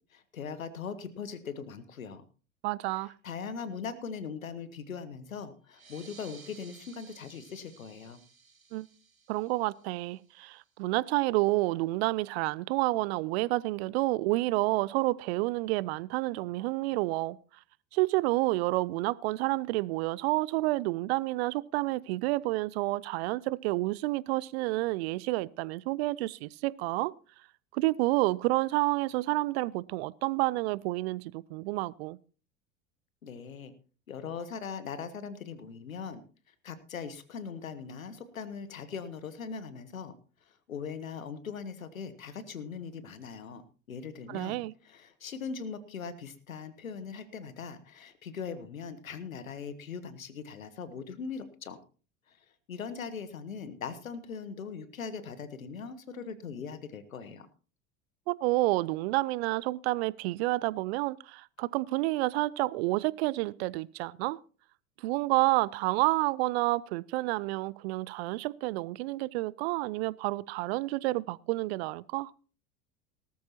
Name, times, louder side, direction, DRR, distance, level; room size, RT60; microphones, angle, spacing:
voice 1, 0.1-2.2 3.2-8.2 33.2-33.7 34.1-36.2 36.6-40.1 40.5-43.6 43.9-51.8 52.3-52.4 52.7-57.5, left 6 dB, 80° left, 1.3 m, -40 dB
voice 2, 2.6-3.1 8.7-8.9 9.3-17.4 17.9-27.1 27.7-32.2 44.3-44.7 58.3-64.4 65.0-72.3, right 20 dB, 50° right, 0.6 m, -29 dB
sound 1, 5.7-10.8, right 5 dB, 85° right, 1.1 m, -56 dB
18.5 x 13.0 x 2.9 m
figure-of-eight pair, 75°, 40 cm